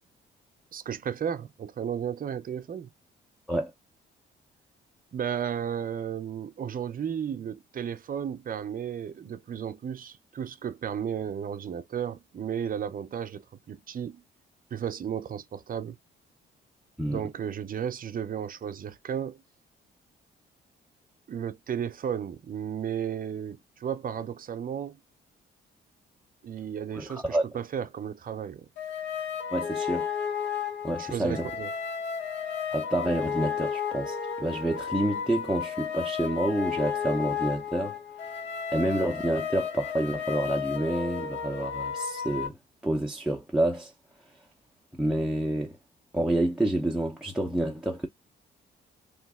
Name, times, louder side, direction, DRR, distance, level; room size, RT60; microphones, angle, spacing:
voice 1, 0.7-2.9 5.1-14.2 14.7-16.0 17.1-19.4 21.3-25.0 26.4-28.7 31.0-31.7, right 8 dB, 45° right, 0.7 m, -34 dB
voice 2, 26.9-27.5 29.5-30.1 30.8-31.5 32.7-38.0 38.7-42.6 42.8-43.9 44.9-45.8 46.1-48.1, right 1 dB, ahead, 0.7 m, -28 dB
sound 1, 28.8-42.5, left 7 dB, 65° left, 1.2 m, -33 dB
3.1 x 2.5 x 3.6 m
cardioid pair, 90°, 20 cm